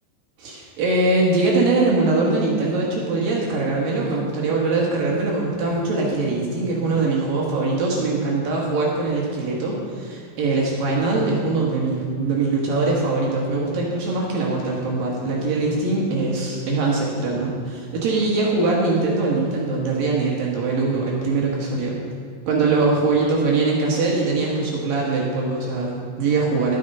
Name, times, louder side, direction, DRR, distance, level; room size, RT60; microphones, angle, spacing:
voice 1, 0.4-22.0 22.5-26.8, right 3 dB, 60° right, -3 dB, 2.8 m, -22 dB
12.5 x 9.7 x 5.4 m, 2.4 s
omnidirectional pair, 5.5 m